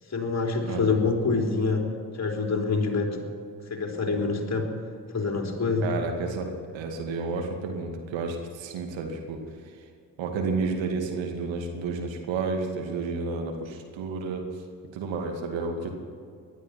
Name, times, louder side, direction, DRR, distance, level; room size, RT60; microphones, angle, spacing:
voice 1, 0.1-1.9 2.2-3.2 3.7-4.7 5.1-5.9, left 4 dB, 35° left, 1 dB, 3.6 m, -26 dB
voice 2, 5.8-9.4 10.2-14.5 14.9-16.0, right 4 dB, 65° right, 3 dB, 2.4 m, -31 dB
19.0 x 12.5 x 5.9 m, 2.4 s
hypercardioid pair, 45°, 49 cm